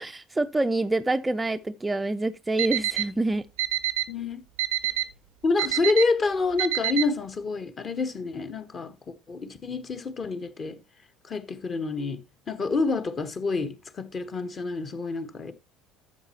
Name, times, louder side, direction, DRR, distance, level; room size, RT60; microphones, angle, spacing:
voice 1, 0.0-3.4, right 2 dB, 15° right, 0.5 m, -26 dB
Alarm, 2.6-3.0 3.6-4.0 4.6-5.0 5.6-6.0 6.6-7.0, right 16 dB, 65° right, 0.6 m, -25 dB
voice 2, 4.1-4.4 5.4-10.8 11.3-12.2 12.5-15.5, left 3 dB, 35° left, 1.2 m, -28 dB
12.5 x 7.5 x 2.9 m
figure-of-eight pair, 60°, 0 cm